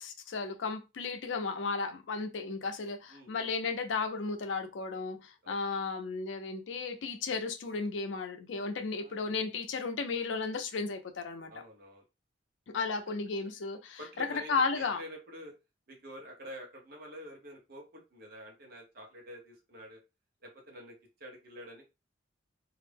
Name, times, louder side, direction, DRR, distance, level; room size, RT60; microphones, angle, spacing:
voice 1, 0.0-11.5 12.7-15.0, left 4 dB, 75° left, 0.5 m, -34 dB
voice 2, 5.4-5.8 9.0-9.3 11.5-12.0 14.0-15.5 15.9-20.0 20.4-21.9, equal, 50° right, 0.8 m, -48 dB
2.4 x 2.0 x 3.3 m
head